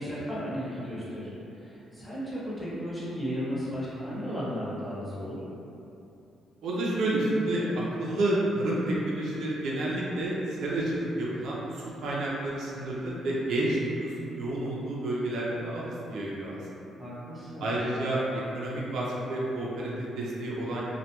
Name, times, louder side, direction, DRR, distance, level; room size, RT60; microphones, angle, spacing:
voice 1, 0.0-5.4 17.0-17.7, equal, 10° left, -9 dB, 0.9 m, -35 dB
voice 2, 6.6-16.8 17.6-20.8, right 1 dB, 75° right, -5 dB, 0.4 m, -30 dB
2.2 x 2.2 x 2.9 m, 2.8 s
cardioid pair, 90°, 0 cm